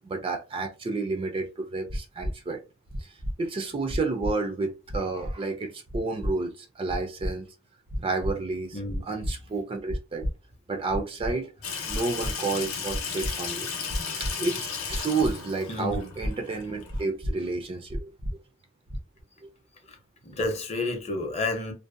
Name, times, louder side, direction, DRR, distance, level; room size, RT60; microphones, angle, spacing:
voice 1, 0.0-2.6 3.0-3.1 3.4-7.5 8.0-10.3 10.7-11.5 11.9-13.7 14.2-18.1 19.4-19.5, right 3 dB, 25° right, 0.3 m, -31 dB
sound 1, 1.9-2.3 2.9-3.3 3.9-4.3 4.9-5.3 5.9-6.3 6.9-7.3 7.9-8.3 8.9-9.3 9.9-10.3 10.9-11.3 11.9-12.3 12.9-13.3 13.9-14.3 14.9-15.3 15.9-16.3 16.9-17.3 17.9-18.3 18.9-19.2, equal, 75° right, 0.7 m, -31 dB
voice 2, 8.7-9.3 15.7-16.1 19.9-20.0 20.2-21.7, left 2 dB, 30° left, 0.6 m, -31 dB
Water tap faucet / Sink (filling or washing), 11.6-17.1, left 6 dB, 80° left, 0.7 m, -35 dB
2.5 x 2.1 x 2.5 m
head